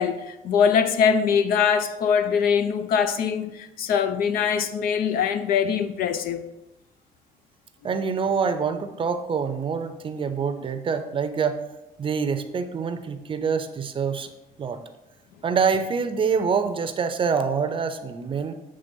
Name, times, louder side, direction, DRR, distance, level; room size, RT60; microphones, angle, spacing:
voice 1, 0.0-6.5 7.8-7.9, left 7 dB, 70° left, 0.6 m, -23 dB
voice 2, 7.8-11.6 12.0-14.3 14.6-14.8 15.4-18.6, right 6 dB, 35° right, 0.6 m, -26 dB
7.9 x 3.4 x 5.3 m
cardioid pair, 130°, 16 cm